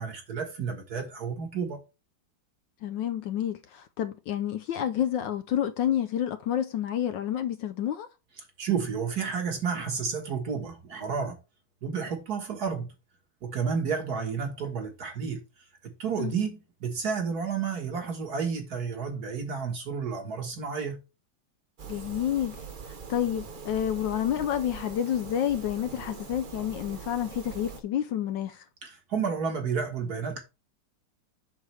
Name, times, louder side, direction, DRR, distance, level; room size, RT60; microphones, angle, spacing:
voice 1, 0.0-1.8 8.6-11.4 11.8-12.9 13.4-15.4 15.8-21.0 28.8-30.4, right 6 dB, 50° right, 1.7 m, -31 dB
voice 2, 2.8-8.1 16.2-16.3 21.9-22.6 22.9-28.6, left 10 dB, 70° left, 1.2 m, -29 dB
sound 1, 21.8-27.8, right 5 dB, 70° right, 0.4 m, -42 dB
7.4 x 6.2 x 3.2 m
omnidirectional pair, 2.3 m